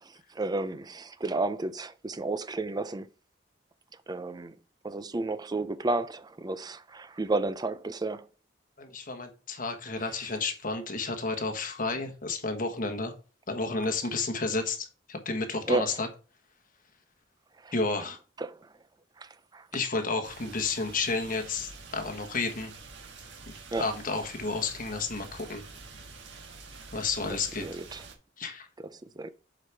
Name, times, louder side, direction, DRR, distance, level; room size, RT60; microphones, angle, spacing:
voice 1, 0.0-3.1 4.1-4.6 4.8-8.3 15.7-15.9 17.6-17.7 18.4-18.7 19.2-19.7 23.7-23.9 27.6-28.0 29.1-29.3, right 2 dB, 20° right, 0.5 m, -32 dB
voice 2, 8.8-13.1 13.5-16.1 17.7-18.2 19.7-22.7 23.5-25.7 26.9-27.7 28.4-28.7, left 3 dB, 50° left, 1.4 m, -31 dB
sound 1, 20.2-28.2, right 4 dB, 90° right, 1.5 m, -47 dB
7.5 x 5.0 x 3.5 m
head